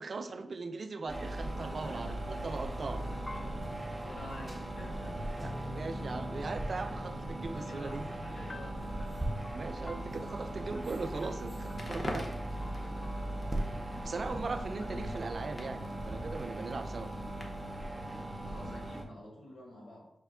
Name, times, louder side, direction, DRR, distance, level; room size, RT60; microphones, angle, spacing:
voice 1, 0.0-3.0 5.4-8.0 9.5-12.3 14.0-17.1, right 3 dB, 60° right, 9 dB, 0.4 m, -39 dB
sound 1, 1.1-19.0, right 1 dB, 15° right, 0.8 m, -39 dB
voice 2, 1.6-2.4 3.3-3.7 4.0-5.8 6.3-6.6 7.5-10.0 12.6-13.2 13.7-14.0 14.3-15.1 18.4-20.1, left 1 dB, 85° left, -4 dB, 1.5 m, -51 dB
sound 2, 2.8-16.0, left 1 dB, 35° left, 0.3 m, -49 dB
Crackle, 11.6-17.8, left 1 dB, 50° left, 0.7 m, -46 dB
5.0 x 2.2 x 3.6 m, 0.77 s
cardioid pair, 45°, 0 cm